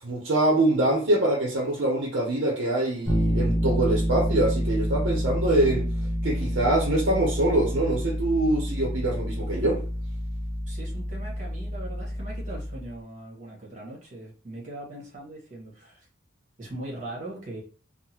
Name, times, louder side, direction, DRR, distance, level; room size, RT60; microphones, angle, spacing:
voice 1, 0.0-5.9 6.2-9.8, right 1 dB, 70° right, 0.8 m, -24 dB
Bass guitar, 3.1-12.9, equal, 15° left, 0.8 m, -28 dB
voice 2, 10.7-16.1 16.6-17.6, right 1 dB, 40° right, 1.4 m, -40 dB
3.7 x 2.1 x 2.9 m
head